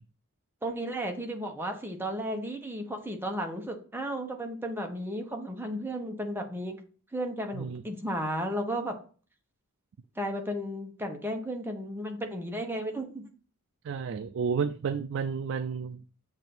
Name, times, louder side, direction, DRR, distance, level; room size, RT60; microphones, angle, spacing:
voice 1, 0.6-6.8 7.1-9.0 10.2-13.3, equal, 10° right, 0.9 m, -34 dB
voice 2, 13.8-16.0, right 6 dB, 65° right, 0.3 m, -31 dB
7.3 x 2.6 x 5.8 m
head